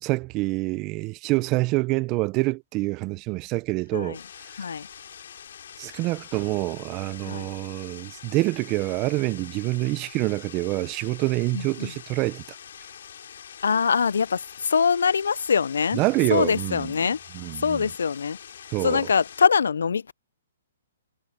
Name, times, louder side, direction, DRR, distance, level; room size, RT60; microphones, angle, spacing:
voice 1, 0.0-4.2 5.8-12.4 15.9-16.9 17.3-17.9 18.7-19.1, right 21 dB, 25° right, 0.6 m, -26 dB
sound 1, 4.1-19.5, left 8 dB, 65° left, 3.8 m, -45 dB
voice 2, 11.5-11.9 13.6-16.0 16.3-17.2 17.6-18.4 18.8-20.1, left 6 dB, 85° left, 0.3 m, -23 dB
hypercardioid pair, 155°, 0 cm